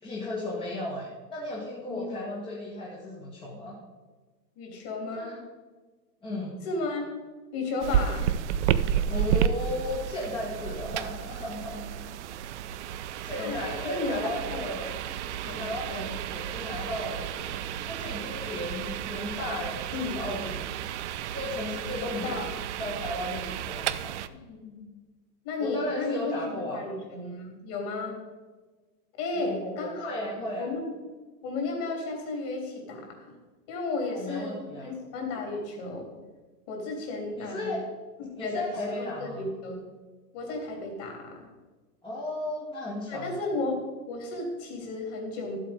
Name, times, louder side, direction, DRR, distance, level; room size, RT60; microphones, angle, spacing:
voice 1, 0.0-3.7 5.1-5.4 6.2-6.5 9.1-12.1 12.9-14.9 15.6-20.8 21.3-22.3 22.8-24.1 25.6-26.9 29.3-30.7 34.1-34.9 37.4-37.8 38.4-39.4 42.0-43.4, left 1 dB, 10° left, -5 dB, 1.5 m, -35 dB
voice 2, 4.6-5.4 6.6-7.0 7.5-8.3 13.4-14.6 15.4-16.0 19.9-20.1 22.0-22.6 24.3-24.8 25.4-28.2 29.1-30.9 31.4-33.3 33.7-36.1 36.7-37.8 38.2-39.9 40.3-41.5 43.1-45.6, left 3 dB, 40° left, 1 dB, 3.6 m, -34 dB
sound 1, 7.8-24.3, right 9 dB, 45° right, 0.5 m, -32 dB
12.5 x 7.8 x 5.3 m, 1.3 s
hypercardioid pair, 135°, 49 cm